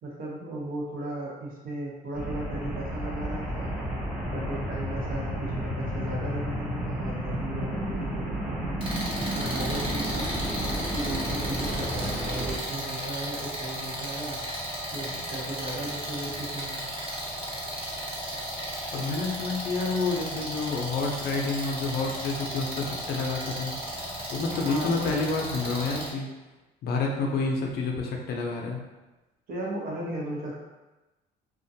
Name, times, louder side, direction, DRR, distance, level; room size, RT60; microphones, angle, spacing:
voice 1, 0.0-4.0 4.3-8.7 9.2-10.3 10.9-14.4 14.9-16.8 24.5-25.3 29.5-30.5, right 2 dB, 60° right, -3 dB, 0.8 m, -36 dB
sound 1, 2.1-12.6, equal, 5° right, 0.6 m, -32 dB
sound 2, 8.8-26.1, equal, 30° right, 1.1 m, -34 dB
voice 2, 18.9-23.7 24.3-26.3 26.8-28.8, left 3 dB, 65° left, 1 dB, 0.5 m, -29 dB
2.5 x 2.1 x 2.7 m, 1.1 s
cardioid pair, 110°, 17 cm